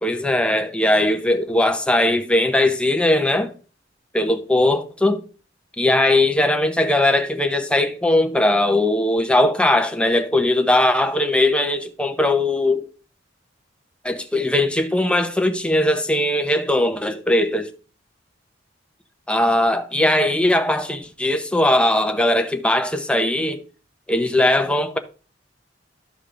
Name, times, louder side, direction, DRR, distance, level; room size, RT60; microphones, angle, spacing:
voice 1, 0.0-3.5 4.1-5.2 5.8-12.8 14.0-17.7 19.3-23.6 24.1-25.0, left 1 dB, 5° left, 0.8 m, -19 dB
13.5 x 5.1 x 2.5 m
head